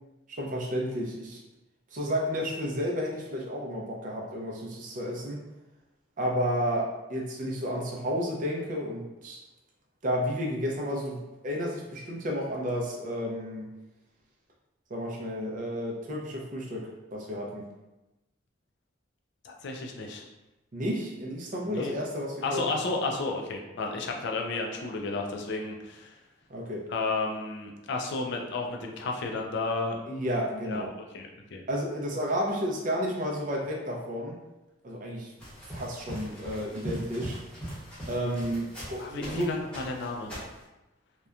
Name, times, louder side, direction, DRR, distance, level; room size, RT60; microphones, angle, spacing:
voice 1, 0.3-1.4 1.9-5.4 6.2-9.4 10.0-11.2 11.4-13.7 14.9-17.7 20.7-22.7 26.5-26.9 30.1-30.9 31.7-34.4 34.8-35.3 35.7-37.4 38.1-39.5, equal, 40° right, -2 dB, 0.5 m, -31 dB
voice 2, 19.4-20.3 21.7-21.9 22.4-26.2 26.9-30.0 30.6-31.6 39.0-40.3, left 3 dB, 60° left, 1 dB, 0.4 m, -32 dB
sound 1, 35.4-39.4 39.7-40.6, equal, 5° left, 0.9 m, -40 dB
2.8 x 2.1 x 2.4 m, 1.0 s
head